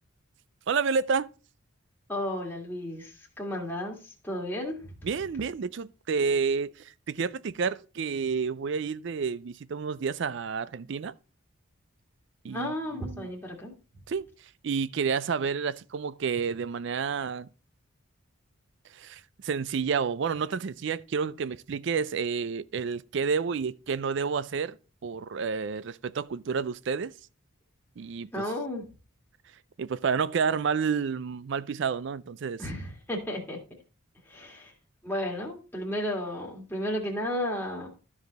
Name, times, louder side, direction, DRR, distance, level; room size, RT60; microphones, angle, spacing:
voice 1, 0.7-1.3 5.0-11.1 12.4-13.3 14.1-14.3 14.6-17.5 18.9-24.8 25.0-27.1 28.0-28.5 29.8-32.6, right 5 dB, 55° right, 0.4 m, -30 dB
voice 2, 2.1-4.9 12.5-13.7 28.3-28.8 32.6-33.6 34.2-34.7 35.0-37.9, left 1 dB, 10° left, 1.9 m, -33 dB
12.5 x 4.9 x 4.0 m
head